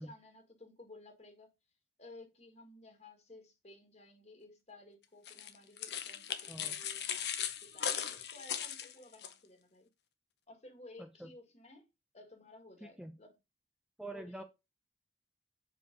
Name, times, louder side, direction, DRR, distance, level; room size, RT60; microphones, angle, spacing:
voice 1, 0.0-1.5 2.0-9.9 10.5-11.9 12.1-13.4 14.1-14.4, left 2 dB, 40° left, 1.8 m, -56 dB
sound 1, 5.3-9.3, left 9 dB, 70° left, 0.8 m, -38 dB
voice 2, 11.0-11.3 12.8-13.2 14.0-14.4, right 1 dB, 5° right, 0.5 m, -46 dB
5.2 x 4.8 x 5.2 m
head